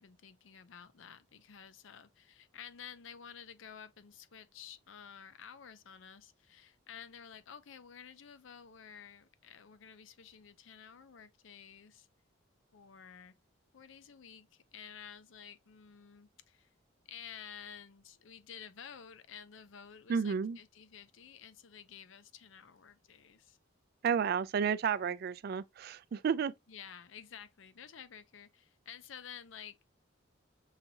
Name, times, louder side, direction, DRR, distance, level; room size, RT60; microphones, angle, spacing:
voice 1, 0.0-12.1 12.7-13.3 13.7-16.7 17.1-23.6 26.7-29.9, left 8 dB, 75° left, 0.5 m, -52 dB
voice 2, 20.1-20.6 24.0-26.5, right 7 dB, 50° right, 0.3 m, -31 dB
5.6 x 2.7 x 2.7 m
head